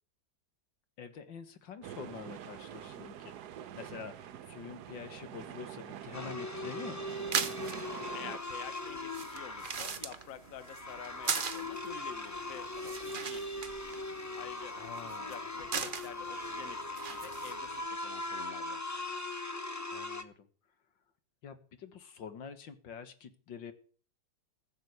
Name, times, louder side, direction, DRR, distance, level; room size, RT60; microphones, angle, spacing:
voice 1, 1.0-7.1 14.8-15.4 19.9-20.5 21.4-23.7, left 7 dB, 75° left, 10 dB, 2.3 m, -47 dB
sound 1, 1.8-8.4, right 10 dB, 65° right, 1.3 m, -45 dB
sound 2, 6.1-20.2, left 2 dB, 20° left, 0.5 m, -40 dB
sound 3, 7.1-17.9, right 6 dB, 40° right, 0.8 m, -40 dB
voice 2, 8.1-13.7 14.4-14.7 15.0-18.8, left 9 dB, 55° left, 14 dB, 1.2 m, -49 dB
15.0 x 7.7 x 8.0 m, 0.43 s
omnidirectional pair, 2.0 m